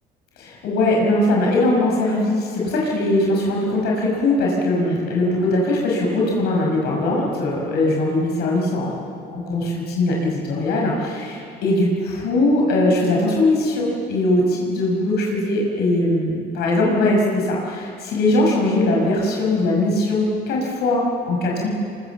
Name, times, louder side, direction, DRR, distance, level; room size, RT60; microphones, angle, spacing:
voice 1, 0.4-9.0 9.3-21.7, left 2 dB, 75° left, -2 dB, 5.7 m, -20 dB
24.5 x 22.5 x 7.1 m, 2.5 s
cardioid pair, 110°, 17 cm